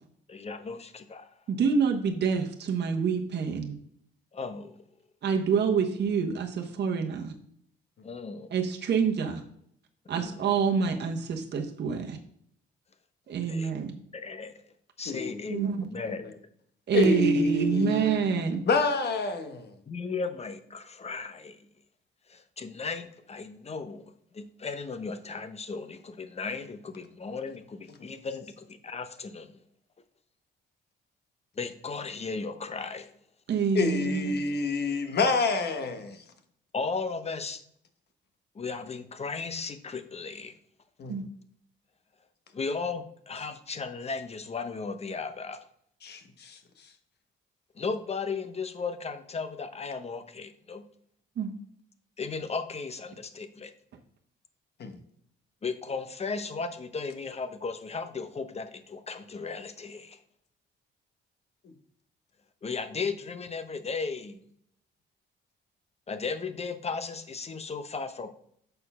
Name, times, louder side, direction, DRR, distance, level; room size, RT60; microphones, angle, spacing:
voice 1, 0.3-1.3 4.3-4.8 8.0-8.5 10.2-10.4 13.5-13.7 14.1-14.6 15.0-16.3 19.9-21.6 22.3-29.5 31.6-33.1 36.7-37.6 38.6-40.5 42.5-45.6 47.8-50.8 52.2-53.7 55.6-60.2 62.6-64.3 66.1-68.3, left 4 dB, 30° left, 0.9 m, -36 dB
voice 2, 1.5-3.7 5.2-7.4 8.5-9.4 10.1-12.2 13.3-13.9 15.5-15.9 16.9-18.6 33.5-34.3 41.1-41.3 51.4-51.5, right 6 dB, 60° right, 1.1 m, -27 dB
voice 3, 15.1-15.7 16.1-16.3 16.9-18.2 18.7-19.7 33.7-36.1 41.0-41.2 46.0-46.6 54.8-54.9, left 3 dB, 55° left, 1.3 m, -27 dB
6.7 x 4.4 x 5.6 m
cardioid pair, 90°, 20 cm